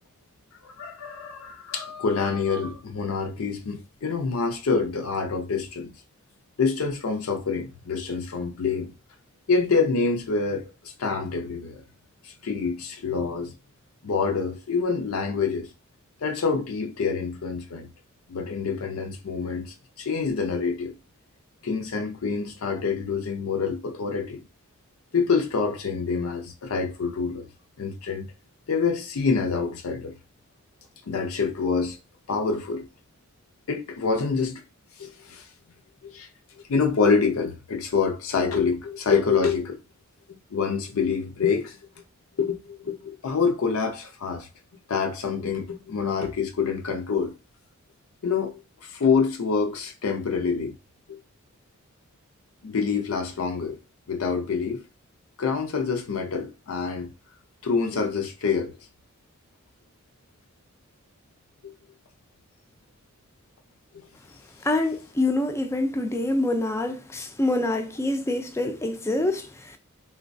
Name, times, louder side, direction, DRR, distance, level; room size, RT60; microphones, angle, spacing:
voice 1, 0.6-5.9 6.6-8.9 9.5-11.8 12.2-13.5 14.0-15.7 16.2-17.9 18.3-20.9 21.6-24.4 25.1-27.5 27.8-28.3 28.7-30.1 31.1-32.0 32.3-32.9 33.7-34.6 35.0-35.5 36.0-36.3 36.6-39.8 40.3-41.8 42.4-44.5 44.9-47.3 48.2-50.7 51.1-51.2 52.6-53.8 54.1-54.8 55.4-57.1 57.6-58.8 61.6-61.7, left 5 dB, 75° left, 0.5 m, -26 dB
voice 2, 64.6-69.8, left 2 dB, 15° left, 0.4 m, -26 dB
3.8 x 2.1 x 2.5 m
head